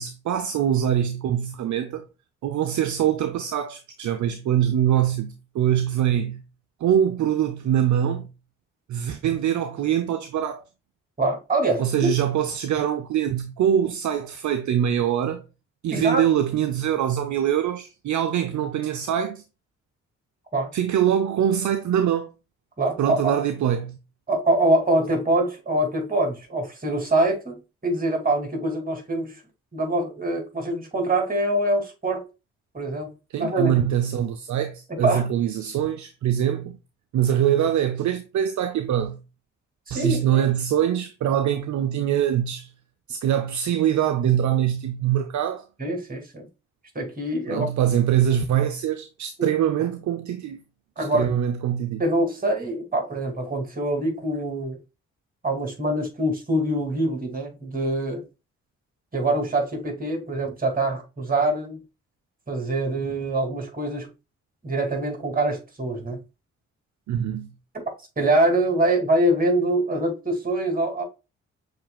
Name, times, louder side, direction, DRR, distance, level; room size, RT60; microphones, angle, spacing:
voice 1, 0.0-2.0 2.4-6.4 6.8-8.3 8.9-10.6 11.8-15.4 15.8-19.4 20.7-22.3 23.0-24.0 33.3-36.8 37.1-39.2 39.9-42.7 43.1-45.6 47.5-50.6 51.0-52.0 67.1-67.5, right 10 dB, 60° right, 0.5 m, -23 dB
voice 2, 11.2-12.1 15.9-16.3 20.5-20.7 22.8-23.4 24.3-29.4 29.7-32.2 32.7-33.1 33.4-33.7 34.9-35.3 39.9-40.4 45.8-46.5 46.9-47.7 51.0-51.3 52.0-54.8 55.4-58.2 59.1-61.8 62.5-64.1 64.6-66.2 68.2-71.0, right 1 dB, 25° right, 2.3 m, -24 dB
6.7 x 3.2 x 2.2 m
hypercardioid pair, 40°, 33 cm